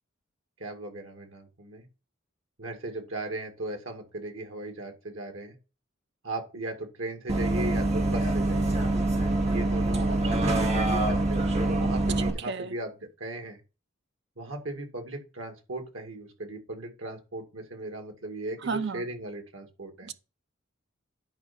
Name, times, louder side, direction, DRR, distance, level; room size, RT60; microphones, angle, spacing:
voice 1, 0.6-1.9 2.6-5.5 6.2-8.8 9.5-13.6 14.4-20.1, right 2 dB, 80° right, 2.2 m, -37 dB
Bus, 7.3-12.3, right 2 dB, 35° right, 1.7 m, -25 dB
voice 2, 12.3-12.7 18.6-19.0 20.0-20.1, right 4 dB, 60° right, 0.7 m, -32 dB
10.5 x 4.8 x 4.3 m
head